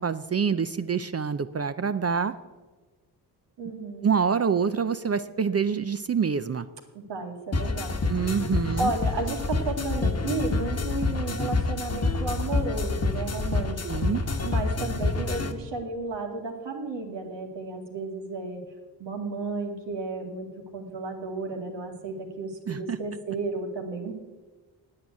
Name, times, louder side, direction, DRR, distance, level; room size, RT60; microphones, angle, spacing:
voice 1, 0.0-2.3 4.0-6.7 8.1-8.9 13.8-14.2 22.7-23.0, right 6 dB, 35° right, 11 dB, 0.5 m, -26 dB
voice 2, 3.6-4.1 6.9-8.0 8.8-14.0 14.4-18.6 19.0-24.1, right 3 dB, 90° right, 2 dB, 2.2 m, -33 dB
sound 1, 7.5-15.5, left 3 dB, 35° left, 1.2 m, -27 dB
8.9 x 8.8 x 9.4 m, 1.3 s
cardioid pair, 70°, 42 cm